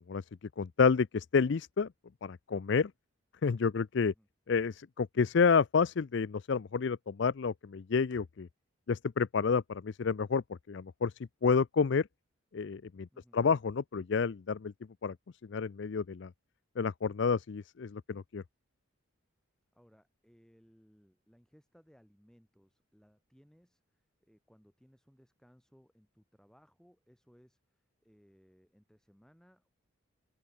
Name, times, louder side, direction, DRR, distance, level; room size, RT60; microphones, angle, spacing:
voice 1, 0.6-1.9 2.2-2.9 3.4-4.1 4.5-8.5 8.9-10.4 10.7-11.1 11.4-12.1 12.5-13.1 13.3-14.7 15.0-15.1 15.5-16.3 16.8-18.4, left 5 dB, 55° left, 0.4 m, -29 dB
voice 2, 19.7-29.7, equal, 5° left, 6.5 m, -64 dB
open air
head